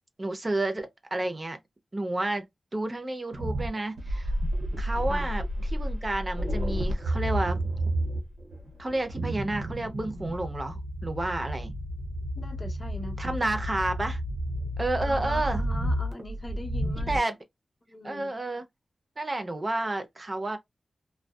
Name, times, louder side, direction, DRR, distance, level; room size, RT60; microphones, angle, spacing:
voice 1, 0.2-1.6 1.9-2.4 2.7-4.3 4.8-7.6 8.8-11.7 13.2-14.2 14.8-15.6 17.0-17.3 18.0-18.6 19.2-20.6, right 2 dB, 25° right, 0.5 m, -30 dB
sound 1, 3.3-17.2, equal, 85° right, 0.6 m, -31 dB
voice 2, 12.4-13.4 15.0-17.2 17.9-18.3, left 1 dB, 25° left, 0.6 m, -41 dB
2.6 x 2.1 x 2.2 m
wide cardioid pair, 135°, 0 cm